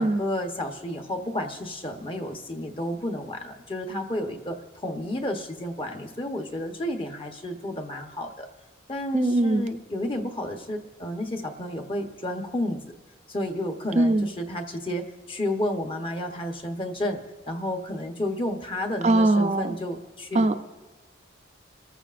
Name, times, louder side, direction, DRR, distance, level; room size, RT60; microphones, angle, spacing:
voice 1, 0.0-8.5 8.9-12.8 13.3-17.2 17.5-20.5, left 1 dB, 25° left, 4 dB, 1.0 m, -31 dB
voice 2, 9.1-9.6 14.0-14.3 19.0-19.8 20.3-20.5, right 2 dB, 35° right, 6 dB, 0.5 m, -21 dB
28.0 x 14.0 x 2.5 m, 1.2 s
head